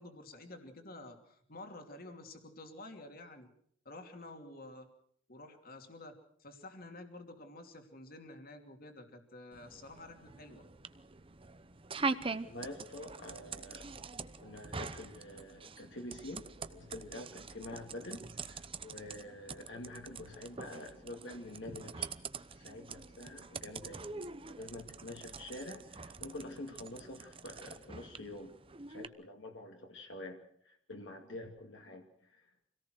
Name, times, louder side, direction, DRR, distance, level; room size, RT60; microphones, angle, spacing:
voice 1, 0.0-3.5 3.8-4.9 5.3-10.6, left 2 dB, 50° left, 5 dB, 2.8 m, -50 dB
sound 1, 9.5-29.1, right 4 dB, 30° right, 0.9 m, -44 dB
voice 2, 12.4-13.9 14.2-22.1 22.5-28.6 28.9-32.5, left 1 dB, 65° left, 2 dB, 2.4 m, -47 dB
26.0 x 18.0 x 6.4 m, 0.68 s
head